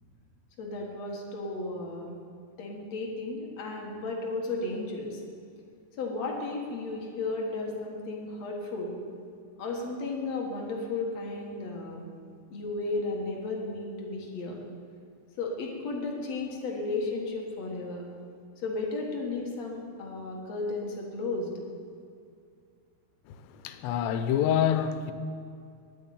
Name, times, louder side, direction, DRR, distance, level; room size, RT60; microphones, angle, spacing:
voice 1, 0.6-2.1 2.6-5.2 6.0-9.0 9.6-12.0 12.5-14.6 15.4-18.0 18.6-21.6, left 3 dB, 55° left, 2.2 m, -34 dB
voice 2, 23.3-25.1, left 9 dB, 85° left, 2.9 m, -27 dB
10.5 x 9.3 x 9.5 m
omnidirectional pair, 4.9 m